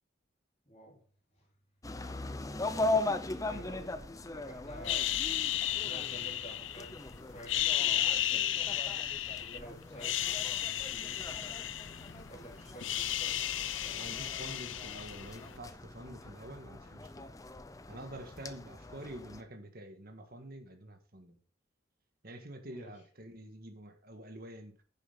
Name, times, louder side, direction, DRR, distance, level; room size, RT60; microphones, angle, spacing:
voice 1, 0.7-1.0 1.4-1.5 3.4-4.0 4.3-7.0 7.3-8.7 9.3-10.5 10.9-11.3 12.3-14.1 22.6-23.0, right 1 dB, 35° left, -2 dB, 4.0 m, -51 dB
sound 1, 1.8-19.4, left 2 dB, 20° left, 0.6 m, -40 dB
sound 2, 4.9-7.0 7.4-9.6 9.9-12.3 12.6-15.5, left 12 dB, 85° left, 0.6 m, -33 dB
voice 2, 13.9-17.2 17.9-21.4 22.2-24.8, right 1 dB, 50° right, 6 dB, 1.6 m, -47 dB
10.0 x 7.1 x 4.0 m, 0.39 s
head